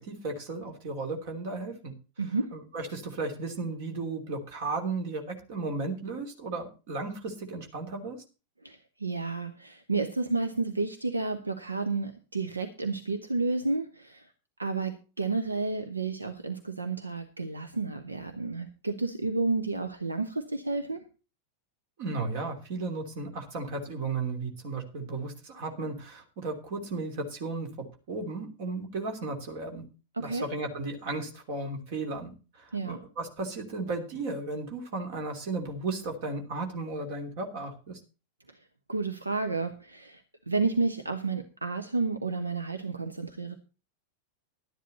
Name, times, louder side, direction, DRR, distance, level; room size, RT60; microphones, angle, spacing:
voice 1, 0.0-1.9 2.5-8.2 22.0-29.8 30.2-32.3 32.6-38.0, right 3 dB, 50° right, 4 dB, 3.1 m, -35 dB
voice 2, 2.2-2.5 8.6-14.3 14.6-21.1 30.1-30.5 32.7-33.0 38.5-38.6 38.9-43.5, right 3 dB, 80° right, 7 dB, 1.1 m, -31 dB
12.5 x 10.5 x 4.2 m, 0.33 s
figure-of-eight pair, 90°, 0 cm